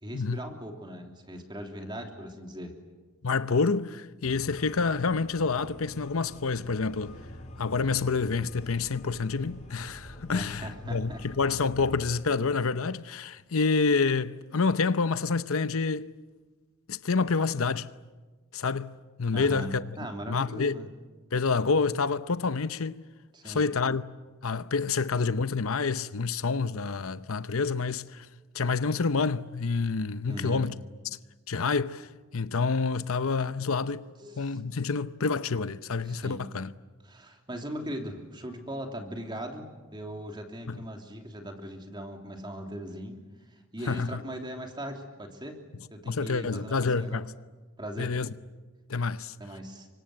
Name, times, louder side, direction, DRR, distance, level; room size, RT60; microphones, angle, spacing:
voice 1, 0.0-2.7 10.3-11.5 19.3-20.9 23.3-23.6 30.3-30.7 34.2-34.6 36.0-36.4 37.0-39.6 39.9-43.2 43.5-45.6 45.9-47.2 47.8-48.1 49.4-49.9, equal, 20° right, 3.1 m, -39 dB
voice 2, 3.2-7.1 7.6-16.1 16.9-17.9 18.5-18.9 19.2-20.0 20.3-20.8 21.3-23.0 23.4-24.0 24.4-28.3 28.5-30.7 31.0-31.2 31.5-32.1 32.3-34.1 34.4-36.7 40.7-40.8 43.9-44.2 46.1-47.3 48.0-48.3 48.9-49.3, left 4 dB, 80° left, 0.8 m, -28 dB
sound 1, 4.2-12.1, left 1 dB, 30° left, 5.2 m, -45 dB
29.5 x 24.5 x 7.9 m
head